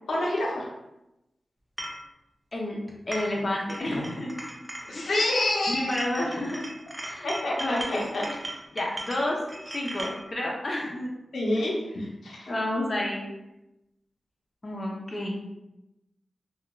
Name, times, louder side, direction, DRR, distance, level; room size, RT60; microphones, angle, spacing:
voice 1, 0.1-0.7 4.9-5.9 7.2-8.2 11.3-12.5, left 1 dB, 90° left, -3 dB, 0.5 m, -28 dB
sound 1, 1.8-2.0 2.9-3.4 3.7-5.6 5.9-10.2, right 1 dB, 20° right, 0.4 m, -38 dB
voice 2, 3.1-4.4 4.9-5.1 5.7-6.7 7.0-7.3 7.6-8.3 8.7-9.4 9.7-11.1 12.5-13.2 14.6-15.4, left 1 dB, 35° left, -2 dB, 0.6 m, -30 dB
2.3 x 2.2 x 3.0 m, 0.91 s
wide cardioid pair, 90°, 0 cm